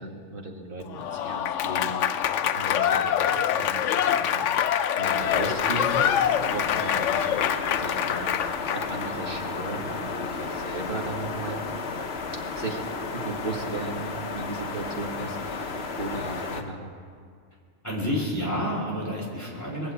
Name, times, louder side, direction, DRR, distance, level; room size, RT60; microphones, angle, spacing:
voice 1, 0.0-2.0 2.4-6.1 6.5-7.3 7.7-11.6 12.5-12.8 13.1-16.9, right 3 dB, 45° right, 0 dB, 2.0 m, -36 dB
Applause / Crowd, 0.9-9.1, left 9 dB, 75° left, 0.9 m, -25 dB
sound 1, 5.1-16.6, left 4 dB, 60° left, 1.3 m, -33 dB
voice 2, 17.8-19.9, equal, 15° left, -4 dB, 3.5 m, -29 dB
22.0 x 7.5 x 8.2 m, 2.2 s
omnidirectional pair, 1.3 m